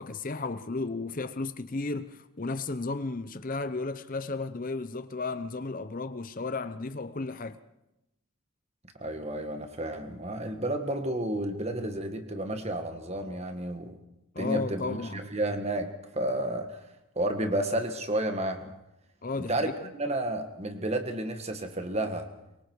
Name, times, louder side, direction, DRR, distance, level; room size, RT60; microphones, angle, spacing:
voice 1, 0.0-7.6 14.3-15.2 19.2-19.7, left 3 dB, 40° left, 0.7 m, -34 dB
voice 2, 9.0-14.0 14.4-16.8 17.2-18.7 19.4-22.3, right 1 dB, 30° right, 1.8 m, -31 dB
24.0 x 23.0 x 4.7 m
head